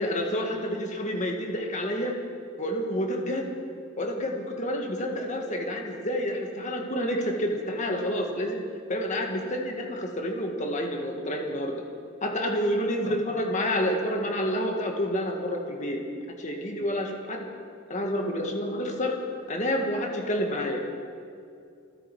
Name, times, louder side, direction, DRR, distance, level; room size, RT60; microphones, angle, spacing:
voice 1, 0.0-2.1 2.6-3.5 4.0-8.6 8.9-11.8 12.2-16.0 16.4-17.5 17.9-19.2 19.5-20.8, equal, 40° left, 2 dB, 1.8 m, -29 dB
28.5 x 10.0 x 4.8 m, 2.4 s
head